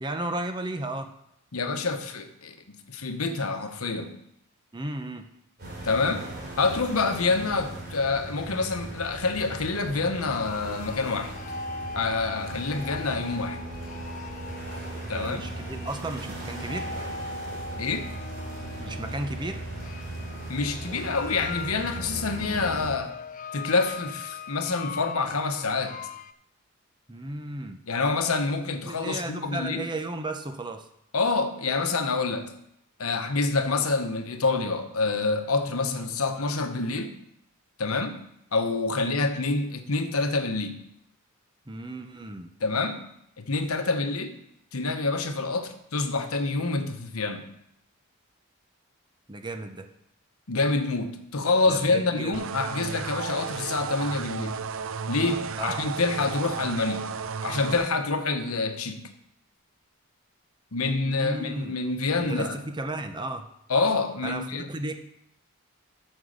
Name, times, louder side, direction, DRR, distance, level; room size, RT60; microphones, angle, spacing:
voice 1, 0.0-1.1 4.7-5.3 15.1-16.9 18.8-19.6 27.1-27.8 28.8-30.9 39.0-39.1 41.7-42.5 49.3-49.9 51.7-52.5 55.6-55.8 61.0-61.8 62.2-63.5 64.2-65.0, right 2 dB, 20° right, 7 dB, 0.7 m, -34 dB
voice 2, 1.5-4.1 5.8-6.3 6.6-11.3 11.9-13.6 15.1-15.4 17.8-18.2 20.5-23.2 23.5-26.0 27.9-29.8 31.1-32.5 33.0-37.1 37.8-38.2 38.5-40.8 42.6-43.0 43.4-44.4 44.7-47.5 50.5-54.6 55.1-57.1 57.4-59.1 60.7-62.6 63.7-64.7, left 3 dB, 75° left, 7 dB, 1.1 m, -27 dB
sound 1, 5.6-22.9, right 2 dB, 45° right, 3.2 m, -38 dB
sound 2, 10.3-26.3, left 4 dB, 35° left, 0.3 m, -40 dB
sound 3, 52.3-57.9, right 6 dB, 60° right, 0.5 m, -33 dB
9.2 x 6.4 x 6.4 m, 0.78 s
head